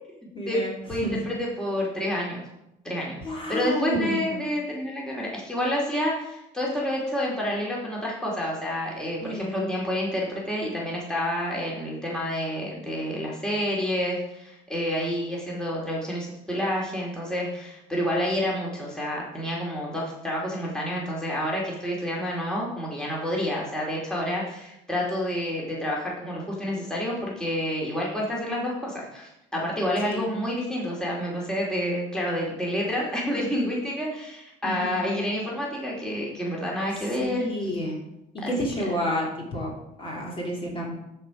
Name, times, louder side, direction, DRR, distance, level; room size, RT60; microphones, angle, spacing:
voice 1, 0.3-0.7 1.0-1.2 3.2-4.3 9.2-9.7 30.1-30.3 34.6-35.0 37.2-38.0 38.3-41.0, equal, 30° left, -2 dB, 2.7 m, -30 dB
voice 2, 0.9-2.4 2.8-3.2 3.5-37.5 38.4-38.5, equal, 5° left, -4 dB, 2.4 m, -29 dB
13.0 x 4.5 x 4.9 m, 0.86 s
cardioid pair, 110°, 17 cm